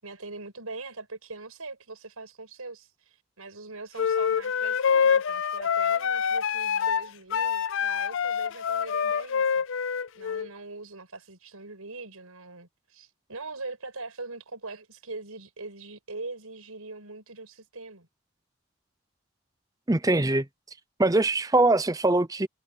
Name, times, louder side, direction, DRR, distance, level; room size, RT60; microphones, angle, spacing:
voice 1, 0.0-9.6 10.1-18.1, right 3 dB, 90° right, 6.0 m, -42 dB
sound 1, 4.0-10.5, left 7 dB, 60° left, 0.4 m, -26 dB
voice 2, 19.9-20.5 21.0-22.5, right 2 dB, 15° right, 0.7 m, -22 dB
head